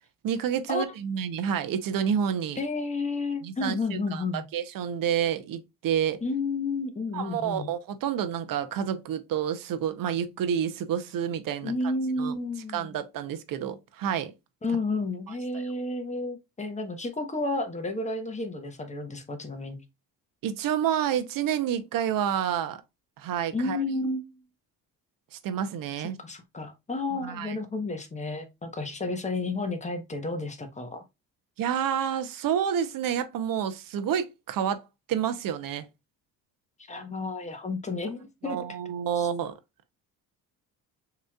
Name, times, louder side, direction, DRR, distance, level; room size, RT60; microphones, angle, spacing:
voice 1, 0.2-2.6 3.4-4.2 4.5-6.2 7.1-11.7 12.2-12.3 12.7-14.3 15.5-15.6 20.4-22.8 23.2-23.8 25.3-26.2 27.2-27.6 31.6-34.8 35.1-35.9 38.4-39.5, right 9 dB, 65° right, 0.9 m, -29 dB
voice 2, 2.6-4.5 6.2-7.7 11.6-12.9 14.6-19.8 23.5-24.4 26.2-31.0 36.9-38.6 39.2-39.3, left 3 dB, 20° left, 1.2 m, -31 dB
6.6 x 3.1 x 2.4 m
cardioid pair, 105°, 36 cm